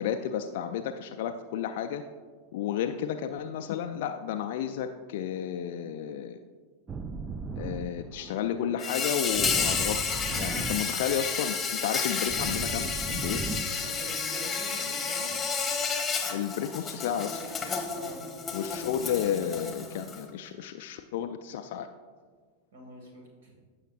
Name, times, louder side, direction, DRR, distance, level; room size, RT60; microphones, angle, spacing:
voice 1, 0.0-2.0 2.5-6.4 7.6-10.0 10.3-13.4 16.3-17.4 18.5-21.9, left 9 dB, 50° left, 6 dB, 0.4 m, -32 dB
sound 1, 6.9-14.9, right 4 dB, 15° right, 0.5 m, -38 dB
Insect, 8.8-20.2, left 5 dB, 15° left, 1.2 m, -31 dB
voice 2, 13.8-15.3 17.9-18.3 22.7-23.5, right 1 dB, 60° right, 0 dB, 2.2 m, -44 dB
15.5 x 5.8 x 2.5 m, 1.5 s
figure-of-eight pair, 90°, 0 cm